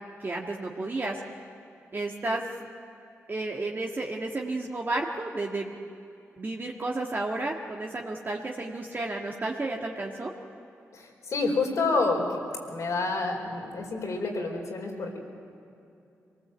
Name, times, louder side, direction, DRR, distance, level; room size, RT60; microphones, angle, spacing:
voice 1, 0.2-1.2 1.9-2.5 3.3-5.7 6.4-10.3, right 2 dB, 40° right, -1 dB, 1.8 m, -32 dB
voice 2, 10.9-12.4 12.7-15.2, left 3 dB, 70° left, 0 dB, 4.6 m, -28 dB
24.0 x 19.0 x 8.1 m, 2.6 s
cardioid pair, 60°, 6 cm